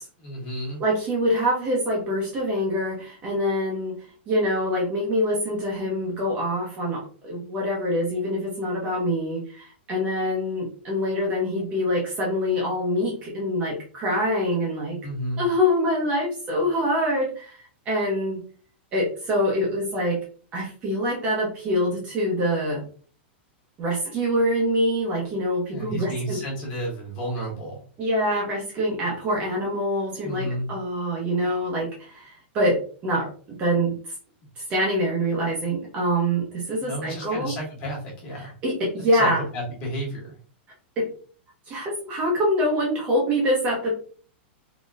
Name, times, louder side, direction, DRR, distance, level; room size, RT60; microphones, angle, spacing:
voice 1, 0.2-0.8 15.0-15.4 25.7-27.8 30.2-30.7 36.8-38.5 39.1-40.3, equal, 25° left, -3 dB, 1.5 m, -32 dB
voice 2, 0.8-15.0 15.4-18.4 18.9-20.2 20.5-22.8 23.8-26.4 28.0-33.3 33.6-33.9 34.6-37.5 38.3-39.4 41.0-41.1 41.7-44.0, equal, 20° right, -3 dB, 0.8 m, -25 dB
3.9 x 2.9 x 2.4 m, 0.41 s
supercardioid pair, 180°, 6 cm